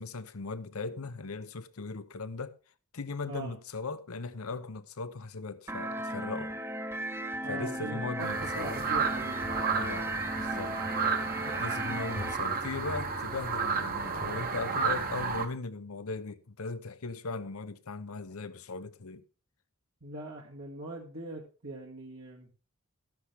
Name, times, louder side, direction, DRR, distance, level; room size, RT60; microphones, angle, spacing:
voice 1, 0.0-2.6 2.9-6.6 7.5-8.8 9.7-10.8 11.4-19.2, left 3 dB, 90° left, 0.9 m, -38 dB
voice 2, 3.3-3.6 7.4-9.5 11.8-12.1 20.0-22.5, right 2 dB, 75° right, 2.3 m, -42 dB
sound 1, 5.7-12.3, right 1 dB, 10° right, 0.6 m, -36 dB
sound 2, 8.2-15.5, right 5 dB, 45° right, 1.3 m, -32 dB
13.0 x 10.5 x 3.5 m
head